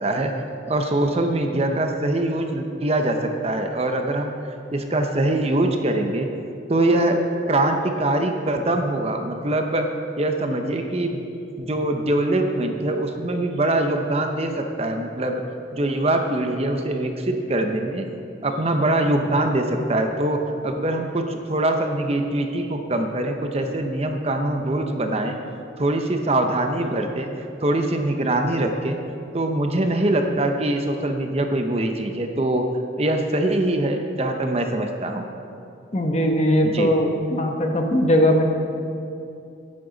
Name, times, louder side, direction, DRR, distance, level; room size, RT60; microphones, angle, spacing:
voice 1, 0.0-0.3 0.7-4.3 4.7-6.3 6.7-7.2 7.5-9.8 10.2-11.2 11.6-15.4 15.7-18.1 18.4-20.4 20.6-25.3 25.8-27.3 27.6-29.0 29.3-32.6 33.0-35.2 36.7-36.9, right 1 dB, 35° right, 5 dB, 0.7 m, -23 dB
voice 2, 35.9-38.4, equal, 35° left, 3 dB, 1.0 m, -20 dB
13.0 x 11.0 x 4.0 m, 2.7 s
head